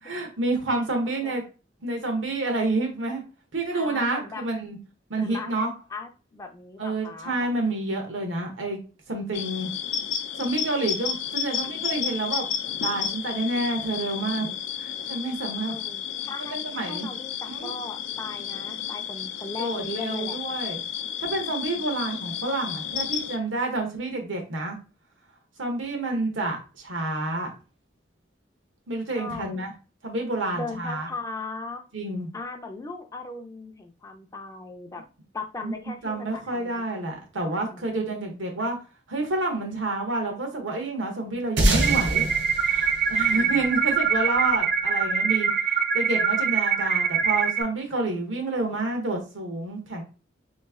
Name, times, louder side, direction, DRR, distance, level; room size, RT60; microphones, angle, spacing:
voice 1, 0.0-1.4 1.8-3.2 3.5-4.8 5.1-5.7 6.8-8.8 9.1-9.7 10.4-12.5 12.8-14.5 14.8-15.7 16.5-17.1 17.5-17.7 19.5-20.8 21.2-24.8 25.6-27.5 28.9-29.7 30.0-31.1 31.9-32.3 35.6-35.7 36.0-38.8 39.1-42.2 42.5-50.0, right 2 dB, 85° right, 2 dB, 1.1 m, -29 dB
voice 2, 3.7-4.4 5.2-7.5 15.7-20.4 29.1-29.6 30.5-31.8 32.3-35.0 35.3-36.8 37.5-37.8 43.3-43.7, left 3 dB, 15° left, 5 dB, 0.4 m, -38 dB
sound 1, 9.3-23.4, left 8 dB, 80° left, 0.4 m, -32 dB
sound 2, 41.6-44.3, right 1 dB, 70° right, 0.9 m, -25 dB
sound 3, 41.8-47.6, right 6 dB, 45° right, 0.5 m, -24 dB
3.1 x 2.4 x 3.5 m, 0.33 s
head